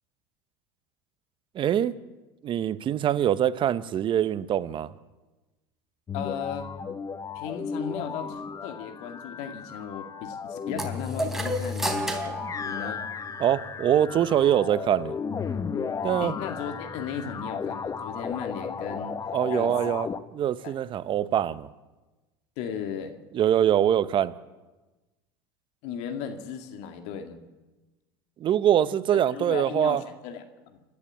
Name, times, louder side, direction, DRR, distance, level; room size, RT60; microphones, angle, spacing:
voice 1, 1.5-2.0 2.4-4.9 13.4-15.2 16.0-16.3 19.3-21.7 23.3-24.3 28.4-30.0, right 10 dB, 40° right, 1.1 m, -24 dB
voice 2, 6.1-6.7 7.3-13.0 16.2-19.2 19.5-19.7 20.6-20.7 22.6-23.2 25.8-27.4 29.3-30.8, left 7 dB, 65° left, 2.2 m, -36 dB
sound 1, 6.1-20.2, left 6 dB, 25° left, 1.1 m, -34 dB
sound 2, 10.8-13.5, right 1 dB, 5° right, 3.5 m, -32 dB
27.5 x 12.0 x 8.6 m
hypercardioid pair, 80°, 12 cm